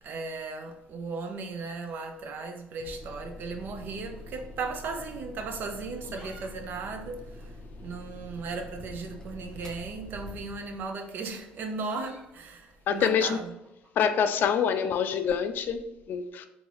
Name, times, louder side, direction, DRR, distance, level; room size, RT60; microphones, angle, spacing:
voice 1, 0.0-13.5, right 4 dB, 60° right, 0.5 m, -36 dB
sound 1, 2.8-10.8, left 1 dB, 15° left, 0.7 m, -45 dB
sound 2, 3.6-4.9 5.1-5.2 5.8-6.5 6.7-6.8 7.1-7.2 7.8-7.9 9.1-9.2 10.4-14.6, right 1 dB, 30° right, 1.1 m, -55 dB
voice 2, 12.9-13.4 14.0-16.5, left 7 dB, 60° left, 0.3 m, -26 dB
3.7 x 2.6 x 3.0 m
supercardioid pair, 90°, 4 cm